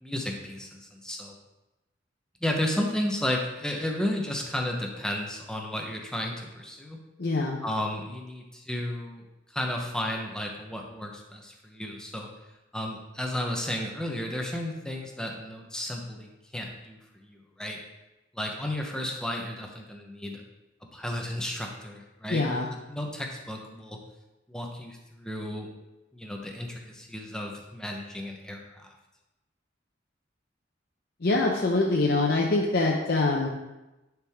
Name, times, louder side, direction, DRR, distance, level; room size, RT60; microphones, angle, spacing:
voice 1, 0.0-1.3 2.4-7.0 7.6-9.2 9.5-12.3 12.7-17.8 18.3-20.4 20.9-22.6 22.9-24.0 24.5-25.7 26.1-28.9, left 1 dB, 5° left, 1 dB, 0.9 m, -33 dB
voice 2, 7.2-7.6 22.3-22.7 31.2-33.5, left 2 dB, 55° left, -1 dB, 0.8 m, -24 dB
10.5 x 4.7 x 3.6 m, 1.0 s
head